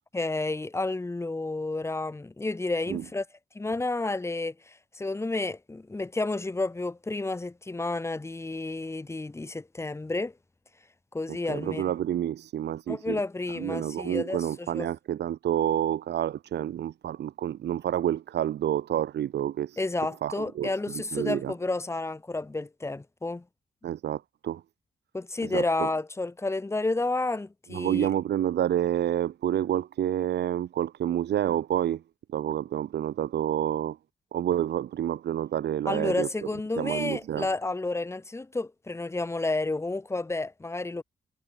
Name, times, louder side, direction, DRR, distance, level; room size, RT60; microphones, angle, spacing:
voice 1, 0.1-3.2 3.5-10.3 11.1-11.8 12.9-14.9 19.8-23.4 25.1-28.1 35.8-41.0, left 2 dB, 15° left, 4.6 m, -31 dB
voice 2, 11.3-13.2 13.5-19.8 20.2-21.5 23.8-24.6 25.4-25.9 27.7-32.0 32.3-34.0 34.3-36.3 36.8-37.5, right 11 dB, 75° right, 1.0 m, -29 dB
wide cardioid pair, 165°, 18 cm